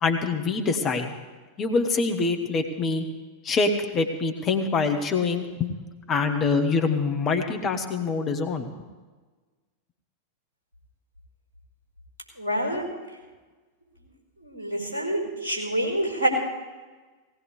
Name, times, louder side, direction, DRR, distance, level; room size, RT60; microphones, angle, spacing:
voice 1, 0.0-1.1 1.6-3.0 3.4-5.7 6.1-8.7, left 4 dB, 30° left, 5 dB, 1.6 m, -25 dB
voice 2, 12.4-12.8 14.4-16.3, right 1 dB, 75° right, -1 dB, 4.8 m, -27 dB
18.5 x 18.0 x 3.4 m, 1.3 s
figure-of-eight pair, 90°, 0 cm